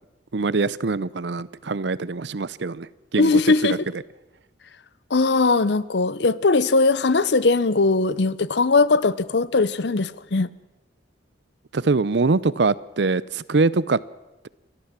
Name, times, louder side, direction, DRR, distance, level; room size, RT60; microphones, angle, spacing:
voice 1, 0.3-3.8 11.7-14.0, right 3 dB, 65° right, 0.6 m, -23 dB
voice 2, 3.2-3.9 5.1-10.5, left 3 dB, 65° left, 0.7 m, -20 dB
29.5 x 13.0 x 7.4 m
head